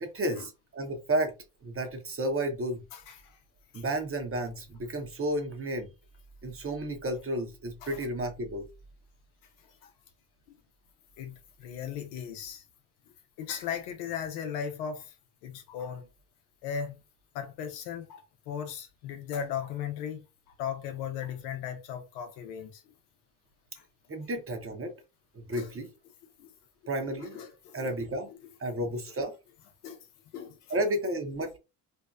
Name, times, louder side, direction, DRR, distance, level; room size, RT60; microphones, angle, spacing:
voice 1, 0.0-1.3 1.6-2.8 3.7-5.9 6.4-8.7 24.1-24.9 25.3-25.9 26.9-27.4 27.7-28.3 28.6-29.3 30.7-31.6, right 1 dB, 30° right, 0.9 m, -32 dB
voice 2, 2.9-3.4 3.7-3.8 7.8-8.1 9.6-9.9 11.2-12.6 13.4-15.2 15.4-16.1 16.6-17.0 17.3-22.8 23.8-23.9 25.5-25.7 26.4-26.5 27.2-27.9 29.8-30.1 30.3-30.7, left 8 dB, 85° left, 0.6 m, -37 dB
2.7 x 2.1 x 2.4 m
hypercardioid pair, 55°, 41 cm